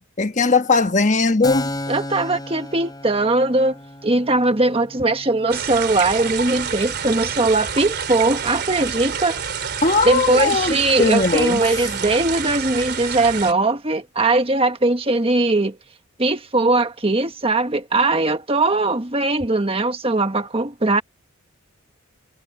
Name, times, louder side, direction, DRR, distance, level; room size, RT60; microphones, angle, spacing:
voice 1, 0.2-1.7 9.8-11.6, left 3 dB, 35° left, 1.3 m, -19 dB
Keyboard (musical), 1.4-8.7, left 1 dB, 20° left, 3.2 m, -35 dB
voice 2, 1.9-9.4 10.0-15.8 16.2-21.0, right 2 dB, 25° right, 1.4 m, -20 dB
sound 1, 5.5-13.5, right 7 dB, 50° right, 3.7 m, -28 dB
head